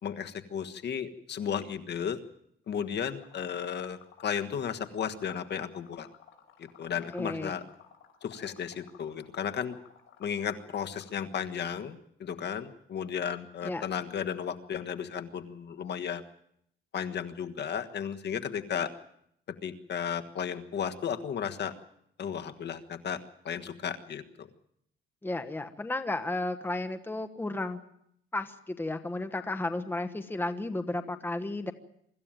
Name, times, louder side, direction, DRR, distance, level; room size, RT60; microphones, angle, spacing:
voice 1, 0.0-2.2 2.7-6.1 6.8-7.6 8.2-9.8 10.2-16.2 16.9-18.9 19.6-21.7 22.2-24.5, left 8 dB, 55° left, 8 dB, 1.5 m, -34 dB
Liquid, 3.2-11.2, left 9 dB, 75° left, 5.3 m, -56 dB
voice 2, 7.1-7.6 13.6-13.8 25.2-27.8 28.3-31.7, left 2 dB, 10° left, 9 dB, 1.2 m, -33 dB
24.5 x 14.0 x 9.0 m, 0.74 s
cardioid pair, 130°, 21 cm